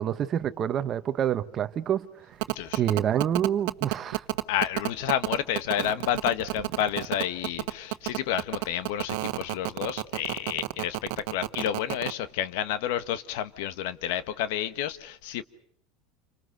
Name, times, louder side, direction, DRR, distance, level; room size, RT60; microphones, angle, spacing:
voice 1, 0.0-2.1 2.7-4.2, right 9 dB, 30° right, 1.0 m, -27 dB
sound 1, 2.4-12.1, right 21 dB, 70° right, 1.3 m, -29 dB
voice 2, 2.5-2.8 4.5-15.4, left 10 dB, 75° left, 1.2 m, -30 dB
29.0 x 25.0 x 6.6 m
supercardioid pair, 150°, 0 cm